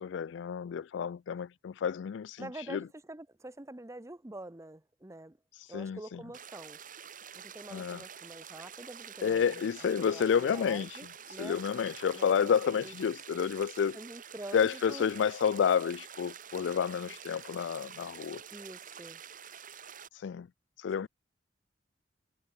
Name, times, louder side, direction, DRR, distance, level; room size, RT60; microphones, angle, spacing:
voice 1, 0.0-2.8 5.7-6.0 7.7-8.0 9.2-11.0 11.4-14.0 14.5-18.4 20.1-20.5 20.8-21.1, left 7 dB, 70° left, 0.3 m, -30 dB
voice 2, 2.4-5.4 5.7-6.8 7.3-11.6 12.1-12.9 13.9-15.1 18.5-19.2 21.0-21.1, right 1 dB, 15° right, 0.8 m, -46 dB
sound 1, 6.3-20.1, right 8 dB, 45° right, 4.0 m, -48 dB
head